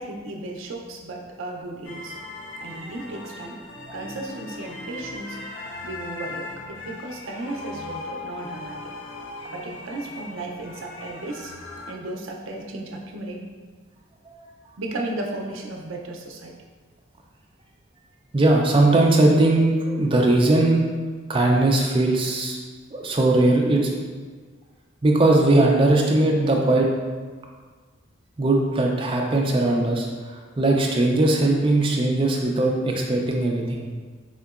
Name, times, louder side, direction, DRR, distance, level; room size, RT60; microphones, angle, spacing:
voice 1, 0.0-2.2 2.6-3.6 3.9-5.4 5.8-8.9 9.5-11.6 11.9-13.4 14.8-16.5 20.1-20.2, right 2 dB, 80° right, 1 dB, 0.5 m, -35 dB
sound 1, 1.8-12.0, left 2 dB, 70° left, 0.5 m, -38 dB
voice 2, 18.3-20.8 21.3-22.6 22.9-23.9 25.0-26.9 28.4-30.1 30.6-33.8, right 2 dB, 25° right, 0 dB, 0.4 m, -19 dB
4.3 x 2.8 x 2.4 m, 1.5 s
head